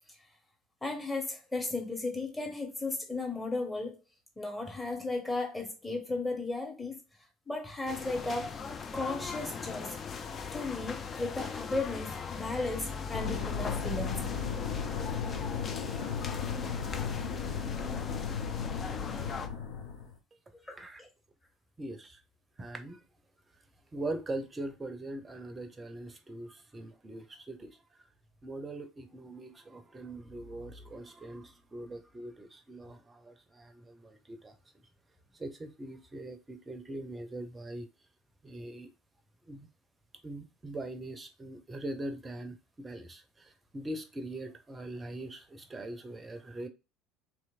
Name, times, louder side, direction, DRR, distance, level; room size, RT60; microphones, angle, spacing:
voice 1, 0.8-4.0 4.4-7.0 7.5-8.7 8.9-10.0 10.5-14.3 20.6-21.1, left 2 dB, 10° left, 1.0 m, -35 dB
sound 1, 7.9-19.5, left 5 dB, 30° left, 0.4 m, -39 dB
sound 2, 13.1-20.2, left 6 dB, 60° left, 0.7 m, -35 dB
voice 2, 21.8-22.2 22.6-23.0 23.9-27.8 28.4-34.6 35.4-37.9 38.4-38.9 39.5-39.7 40.2-46.7, right 1 dB, 20° right, 0.6 m, -41 dB
3.1 x 3.0 x 2.4 m
figure-of-eight pair, 65°, 0 cm